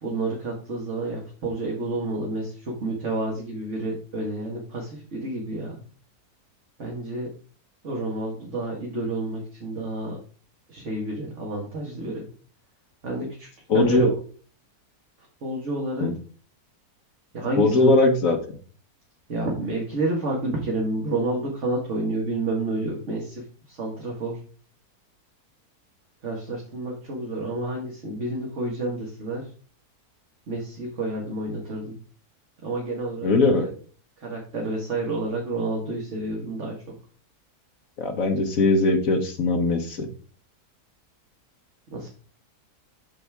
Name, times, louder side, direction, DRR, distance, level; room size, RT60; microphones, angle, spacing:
voice 1, 0.0-5.8 6.8-7.3 7.8-10.2 10.7-12.3 13.0-13.5 13.7-14.1 15.4-16.1 17.3-17.9 19.3-24.4 26.2-29.5 30.5-32.0 32.6-33.3 34.2-36.8 41.9-42.1, right 2 dB, 50° right, -2 dB, 1.8 m, -29 dB
voice 2, 13.7-14.1 16.0-16.1 17.6-18.4 33.2-33.7 38.0-40.1, left 2 dB, 60° left, 6 dB, 1.4 m, -20 dB
12.5 x 4.1 x 3.5 m, 0.42 s
omnidirectional pair, 1.7 m